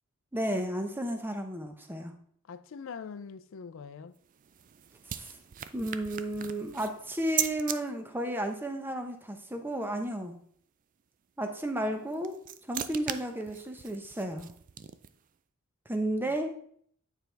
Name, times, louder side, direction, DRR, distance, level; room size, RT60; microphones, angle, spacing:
voice 1, 0.3-2.1 5.1-5.4 5.7-10.4 11.4-12.4 12.7-14.5 15.9-16.5, right 1 dB, 10° right, 0.7 m, -33 dB
voice 2, 2.5-4.1 16.3-16.4, left 6 dB, 60° left, 0.4 m, -43 dB
sound 1, 4.1-7.8 11.9-15.3, right 10 dB, 35° right, 0.3 m, -38 dB
9.0 x 4.5 x 3.3 m
head